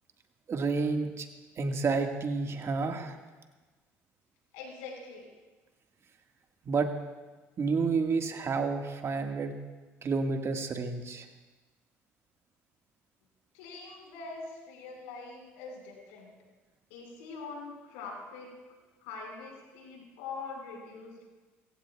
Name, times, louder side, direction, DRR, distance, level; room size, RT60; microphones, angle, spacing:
voice 1, 0.5-1.3 1.6-3.2 6.6-6.9 7.6-9.6 10.0-11.3, right 4 dB, 45° right, 4 dB, 1.7 m, -30 dB
voice 2, 4.5-5.3 13.5-16.3 16.9-18.5 19.0-21.2, left 4 dB, 80° left, 0 dB, 5.0 m, -43 dB
25.5 x 16.0 x 2.4 m, 1.3 s
hypercardioid pair, 60°, 7 cm